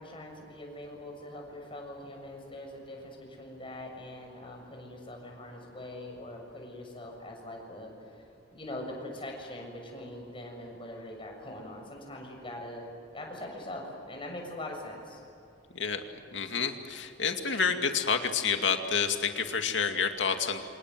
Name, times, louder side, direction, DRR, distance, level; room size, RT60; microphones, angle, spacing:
voice 1, 0.0-7.9 8.5-12.9 13.1-15.2, left 1 dB, 30° left, 1 dB, 6.9 m, -42 dB
voice 2, 16.3-20.6, left 6 dB, 75° left, 5 dB, 2.4 m, -29 dB
28.5 x 26.0 x 8.0 m, 2.6 s
head